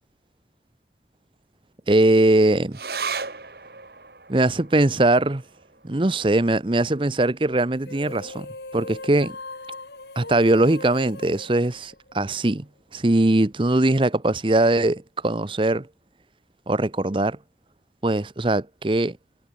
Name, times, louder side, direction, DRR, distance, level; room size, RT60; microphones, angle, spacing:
voice 1, 1.9-2.8 4.3-5.4 5.8-8.5 8.7-9.3 10.2-12.7 12.9-15.9 16.7-17.4 18.0-19.2, right 2 dB, 30° right, 0.8 m, -21 dB
sound 1, 2.7-9.5 9.8-9.9 10.2-10.9 11.5-11.6, right 5 dB, 60° right, 2.8 m, -38 dB
sound 2, 7.8-12.5, left 2 dB, 75° left, 4.9 m, -39 dB
head